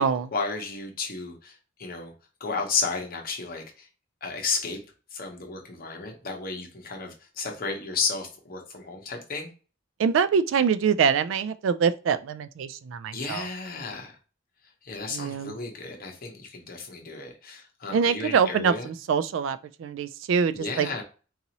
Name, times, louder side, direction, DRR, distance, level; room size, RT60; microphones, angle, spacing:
voice 1, 0.3-2.1 2.4-3.9 4.2-4.8 5.1-9.5 13.1-14.2 14.8-18.9 20.5-21.0, left 4 dB, 50° left, 1.0 m, -33 dB
voice 2, 10.0-13.5 15.1-15.6 17.9-20.9, right 6 dB, 75° right, 0.3 m, -24 dB
4.0 x 2.7 x 2.9 m
head